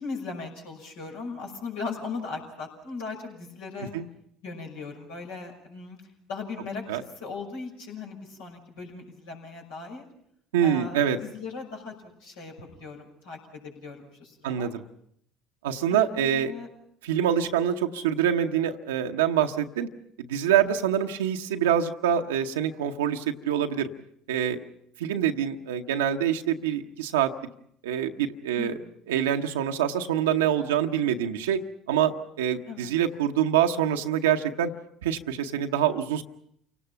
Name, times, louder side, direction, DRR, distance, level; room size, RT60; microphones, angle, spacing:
voice 1, 0.0-3.9 4.4-6.0 6.3-10.1 10.6-11.9 12.2-14.7 15.9-16.7 28.5-28.9 32.7-32.9, left 4 dB, 80° left, 0 dB, 5.8 m, -38 dB
voice 2, 10.5-11.2 14.4-14.8 15.6-16.5 17.0-19.9 20.3-23.9 24.3-24.6 25.0-27.3 27.8-28.8 29.1-31.6 31.9-32.1 32.4-34.7 35.0-36.2, right 9 dB, 85° right, 4 dB, 0.9 m, -25 dB
28.5 x 18.5 x 5.7 m, 0.69 s
hypercardioid pair, 65°, 0 cm